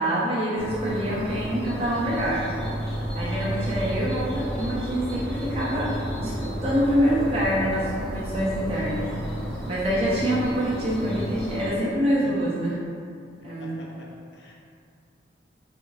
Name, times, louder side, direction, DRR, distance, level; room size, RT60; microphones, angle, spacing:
voice 1, 0.0-2.5 3.1-9.1 9.7-12.7 13.4-13.8, equal, 35° right, -7 dB, 0.4 m, -25 dB
sound 1, 0.6-11.7, equal, 5° left, 0.7 m, -32 dB
sound 2, 2.6-8.8, equal, 65° left, 1.0 m, -38 dB
voice 2, 13.4-14.5, left 1 dB, 90° left, -3 dB, 0.6 m, -46 dB
3.4 x 2.4 x 3.1 m, 2.4 s
head